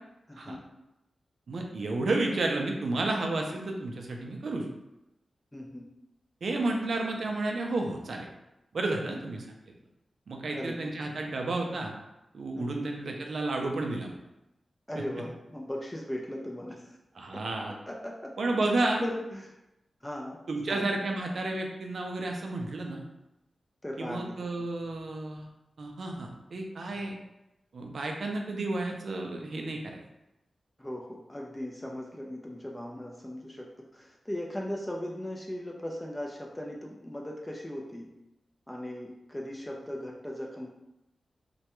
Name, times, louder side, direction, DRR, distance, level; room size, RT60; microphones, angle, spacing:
voice 1, 0.3-0.6 5.5-5.9 9.1-9.2 10.5-10.9 12.6-12.9 14.9-17.0 17.3-18.3 18.6-18.7 19.0-19.5 20.0-20.4 20.7-20.9 23.8-24.5 30.8-38.1 38.7-40.7, left 1 dB, 15° left, -1 dB, 0.3 m, -38 dB
voice 2, 1.5-4.7 6.4-8.3 8.7-9.4 10.3-11.9 12.3-14.2 17.2-17.7 18.4-19.0 20.5-23.0 24.0-25.5 25.8-27.2 27.7-30.0, right 2 dB, 70° right, 1 dB, 0.4 m, -31 dB
2.2 x 2.1 x 2.9 m, 0.92 s
cardioid pair, 55°, 0 cm